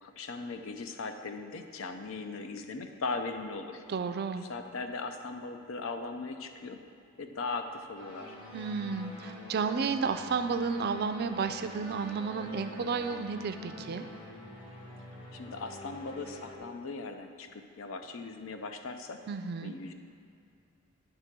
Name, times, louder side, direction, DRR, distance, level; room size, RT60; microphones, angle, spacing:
voice 1, 0.0-3.8 4.5-6.8 7.2-8.4 15.3-19.2 19.6-19.9, left 3 dB, 75° left, 6 dB, 0.5 m, -39 dB
voice 2, 3.9-4.5 8.5-14.0 19.3-19.7, right 5 dB, 50° right, 9 dB, 0.4 m, -32 dB
sound 1, 8.0-16.6, left 1 dB, 25° left, 1.3 m, -46 dB
9.3 x 3.4 x 5.9 m, 2.5 s
head